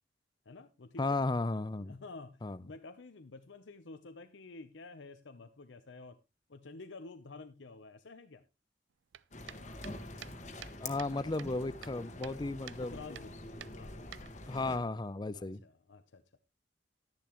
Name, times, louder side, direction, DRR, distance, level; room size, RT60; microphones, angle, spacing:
voice 1, 0.5-1.2 1.9-6.2 6.5-8.4 12.8-13.4 13.7-14.0 15.3-16.4, left 3 dB, 75° left, 0.7 m, -50 dB
voice 2, 1.0-1.9 2.4-2.6 10.8-13.0 14.5-15.6, left 2 dB, 25° left, 0.5 m, -34 dB
sound 1, 9.1-11.1 11.4-12.4 12.7-12.8 13.1-13.3 13.6-14.6, right 10 dB, 80° right, 0.5 m, -50 dB
sound 2, 9.3-14.8, left 2 dB, 40° left, 1.4 m, -46 dB
11.5 x 10.5 x 3.0 m
head